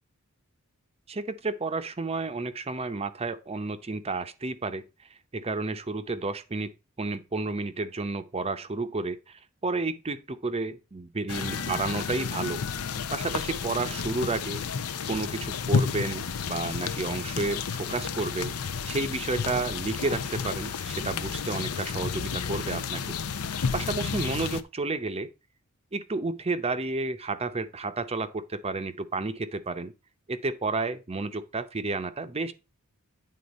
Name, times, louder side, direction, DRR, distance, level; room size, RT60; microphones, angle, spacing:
voice 1, 1.1-6.7 7.0-12.6 13.1-14.6 15.0-23.4 23.7-25.3 25.9-29.9 30.3-32.5, right 3 dB, 25° right, 0.7 m, -31 dB
sound 1, 11.3-24.6, left 6 dB, 85° left, 0.7 m, -31 dB
9.6 x 3.9 x 5.2 m
head